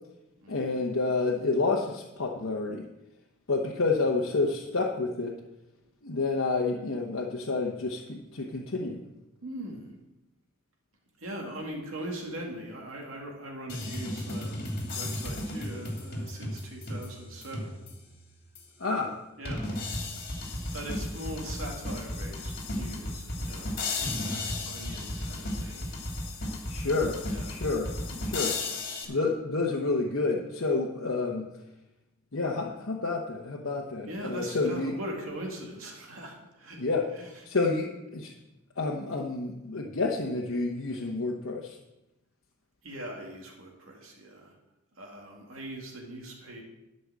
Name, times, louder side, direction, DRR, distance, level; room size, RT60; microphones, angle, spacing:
voice 1, 0.5-2.8 3.5-5.3 6.0-9.0 18.8-19.2 26.7-27.2 27.5-28.6 29.1-31.5 32.3-34.9 36.8-37.1 37.4-38.3 38.8-41.8, left 3 dB, 65° left, -1 dB, 1.0 m, -29 dB
voice 2, 9.4-9.9 11.2-17.7 19.4-19.7 20.6-23.8 24.1-26.0 27.3-27.6 29.0-29.2 34.1-36.9 37.1-37.3 42.8-44.6 44.9-46.6, right 1 dB, 75° right, 0 dB, 2.2 m, -41 dB
sound 1, 13.7-18.1 18.6-18.7 19.5-29.1, left 2 dB, 45° left, 2.2 m, -34 dB
11.5 x 5.4 x 7.5 m, 0.97 s
head